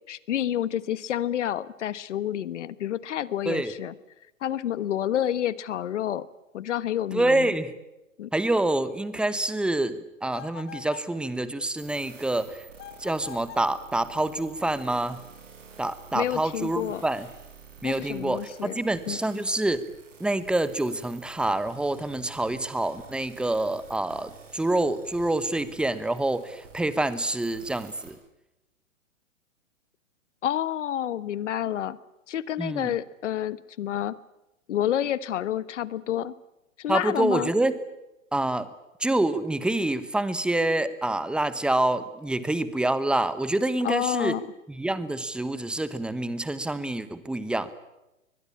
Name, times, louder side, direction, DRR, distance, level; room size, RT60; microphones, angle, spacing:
voice 1, 0.1-3.9 4.4-6.3 6.5-7.5 8.2-8.3 16.1-17.0 17.8-18.8 19.1-19.2 30.4-32.0 32.3-34.1 34.7-36.3 36.8-37.5 43.8-44.4, left 11 dB, 60° left, 17 dB, 1.3 m, -29 dB
voice 2, 7.1-7.7 8.3-12.7 13.0-15.2 15.8-17.3 17.8-19.9 20.2-28.2 32.6-32.9 36.9-37.7 38.3-38.7 39.0-44.4 44.7-47.7, right 2 dB, ahead, 14 dB, 1.1 m, -27 dB
sound 1, 10.3-11.2 12.8-13.7, left 12 dB, 25° left, 2.1 m, -44 dB
sound 2, 11.8-28.1, right 5 dB, 65° right, 6.8 m, -50 dB
23.0 x 20.5 x 9.7 m, 0.97 s
hypercardioid pair, 125°, 41 cm